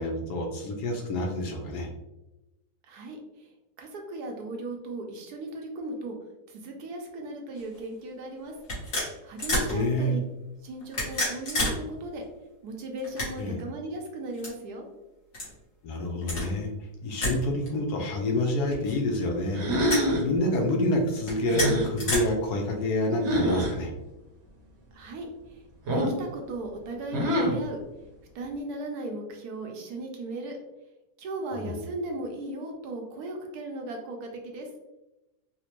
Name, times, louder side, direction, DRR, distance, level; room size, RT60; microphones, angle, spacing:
voice 1, 0.0-1.9 9.7-10.2 13.4-13.6 15.8-16.7 17.0-23.9 31.5-31.8, left 1 dB, 75° left, 2 dB, 1.2 m, -28 dB
voice 2, 2.8-3.5 3.8-6.2 6.5-8.6 9.2-10.2 10.6-12.2 12.6-14.9 24.9-25.6 25.9-27.8 28.3-30.6 31.2-34.7, right 2 dB, 70° right, 2 dB, 1.1 m, -37 dB
sound 1, 7.6-7.8 8.6-9.7 10.8-11.8 12.1-12.2 13.0-13.6 14.3-14.5 15.3-15.5 16.2-16.5 17.2-17.4 17.7-17.8 18.7-19.2 19.8-20.1 21.2-22.2, left 1 dB, 55° left, 1.8 m, -30 dB
sound 2, 19.5-20.3 21.5-21.9 23.2-23.7 25.9-26.2 27.1-27.6, equal, 50° right, 0.9 m, -25 dB
4.1 x 2.1 x 2.9 m, 0.97 s
omnidirectional pair, 1.8 m